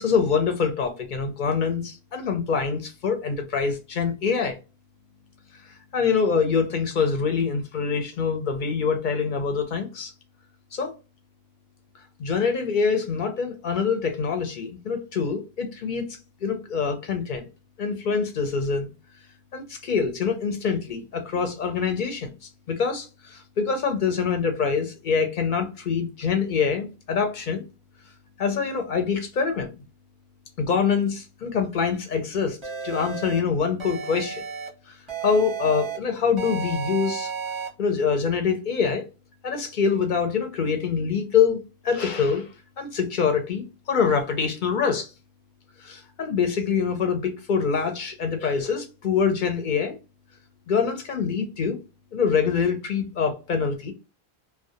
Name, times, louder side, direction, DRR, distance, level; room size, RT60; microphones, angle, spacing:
voice 1, 0.0-4.6 5.9-10.1 10.7-10.9 12.2-16.1 16.4-17.5 17.8-18.9 19.5-22.3 22.7-27.6 28.4-29.7 30.6-32.6 32.8-34.4 35.2-37.3 37.8-39.1 39.4-41.6 41.8-42.5 42.8-45.1 45.8-49.9 50.7-51.8 52.1-53.9, left 6 dB, 55° left, 0.6 m, -25 dB
sound 1, 32.6-33.4 33.8-34.7 35.1-36.0 36.4-37.7, right 6 dB, 30° right, 0.7 m, -32 dB
2.2 x 2.1 x 2.6 m
omnidirectional pair, 1.1 m